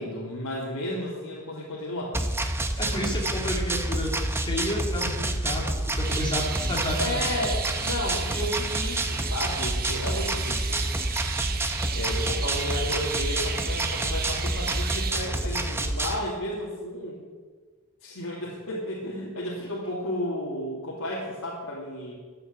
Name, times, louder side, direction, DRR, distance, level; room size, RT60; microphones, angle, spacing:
voice 1, 0.0-2.2 7.0-10.8 11.9-17.2 18.0-22.1, left 1 dB, 75° left, -6 dB, 2.8 m, -33 dB
sound 1, 2.1-16.2, right 1 dB, 10° right, 0.9 m, -28 dB
voice 2, 2.8-7.2, left 1 dB, 20° left, -2 dB, 3.1 m, -31 dB
sound 2, 6.0-15.1, right 8 dB, 40° right, 0.9 m, -35 dB
13.5 x 8.6 x 7.4 m, 1.4 s
head